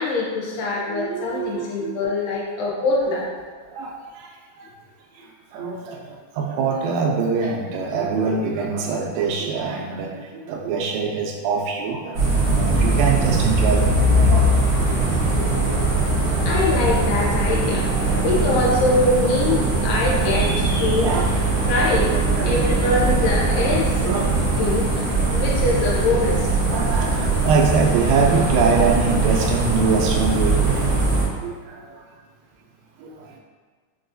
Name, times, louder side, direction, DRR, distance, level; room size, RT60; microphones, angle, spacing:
voice 1, 0.0-3.3 16.4-17.9 18.2-21.1 21.7-22.1 22.5-24.1 24.4-24.9 25.3-26.5, left 2 dB, 80° left, -4 dB, 2.1 m, -23 dB
voice 2, 0.9-2.0 3.7-4.3 4.6-4.7 5.5-14.5 15.9-16.6 17.9-18.1 19.5-19.6 21.0-21.3 21.9-23.2 24.0-24.3 24.7-24.9 26.2-26.3 26.7-31.0 31.4-31.9 33.0-33.3, right 5 dB, 85° right, 0 dB, 2.2 m, -24 dB
sound 1, 12.1-31.2, right 2 dB, 70° right, 1.1 m, -20 dB
5.3 x 2.3 x 2.5 m, 1.5 s
omnidirectional pair, 3.8 m